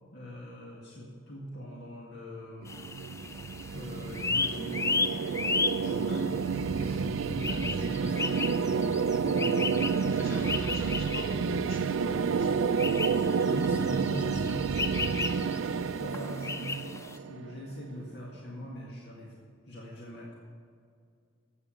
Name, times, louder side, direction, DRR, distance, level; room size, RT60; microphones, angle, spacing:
voice 1, 0.1-2.7 3.7-4.8 5.7-6.5 6.7-8.3 9.2-9.8 13.4-15.0 16.0-19.3 19.7-20.4, equal, 60° left, -3 dB, 1.9 m, -41 dB
sound 1, 2.6-17.7, right 5 dB, 75° right, 0.4 m, -30 dB
sound 2, 2.7-17.2, left 4 dB, 15° left, 0.3 m, -35 dB
voice 2, 5.8-6.3 10.1-12.9 15.6-15.9, equal, 85° left, -4 dB, 4.0 m, -42 dB
12.5 x 8.3 x 7.1 m, 2.2 s
head